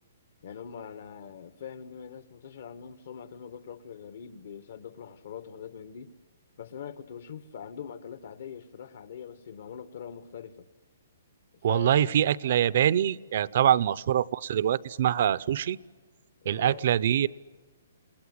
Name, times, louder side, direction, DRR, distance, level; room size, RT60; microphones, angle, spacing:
voice 1, 0.4-6.1 6.6-10.7 11.6-12.1 13.5-13.8 16.4-16.9, left 7 dB, 55° left, 1.8 m, -43 dB
voice 2, 11.6-15.8 16.5-17.3, right 10 dB, 45° right, 0.7 m, -24 dB
29.0 x 19.0 x 9.7 m
hypercardioid pair, 170°, 0 cm